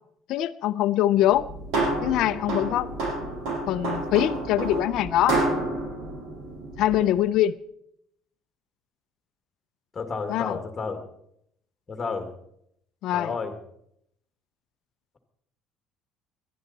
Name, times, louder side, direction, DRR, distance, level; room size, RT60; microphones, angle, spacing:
voice 1, 0.3-1.4 2.0-2.9 3.7-5.4 6.8-7.6 10.3-10.6 13.0-13.3, left 13 dB, 55° left, 11 dB, 0.6 m, -23 dB
sound 1, 1.3-7.1, right 2 dB, 75° right, 6.4 m, -29 dB
voice 2, 9.9-11.0 11.9-12.3 13.1-13.5, left 4 dB, 15° left, 6 dB, 1.7 m, -31 dB
19.0 x 12.0 x 4.1 m, 0.72 s
cardioid pair, 180°, 0 cm